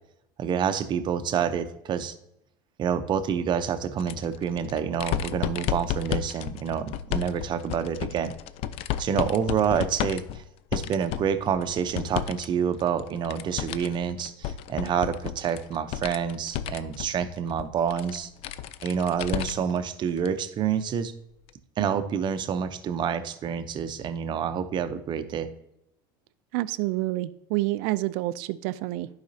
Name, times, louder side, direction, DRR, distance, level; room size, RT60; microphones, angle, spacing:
voice 1, 0.4-2.1 2.8-8.3 9.0-10.4 10.7-18.3 18.8-21.1 21.8-25.5, right 7 dB, 40° right, 10 dB, 0.7 m, -28 dB
sound 1, 4.0-12.5 12.8-19.8 20.2-20.3 21.5-21.6, left 10 dB, 55° left, 0.4 m, -33 dB
voice 2, 26.5-29.1, right 18 dB, 70° right, 15 dB, 0.4 m, -28 dB
11.5 x 4.9 x 2.7 m, 0.80 s
supercardioid pair, 100°, 12 cm